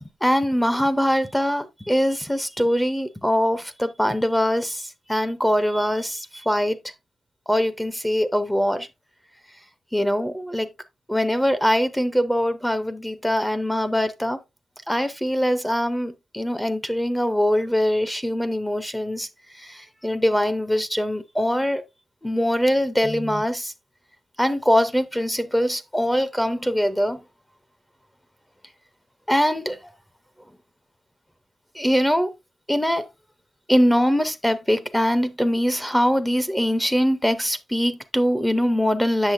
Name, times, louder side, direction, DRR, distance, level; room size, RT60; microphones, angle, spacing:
voice 1, 0.0-6.8 7.5-8.9 9.9-10.7 11.1-14.4 14.9-19.3 19.6-21.8 22.2-23.7 24.4-27.2 29.3-29.8 31.7-32.3 32.7-33.1 33.7-39.3, equal, 5° left, 0.6 m, -22 dB
8.1 x 6.7 x 2.5 m
wide cardioid pair, 130°, 0 cm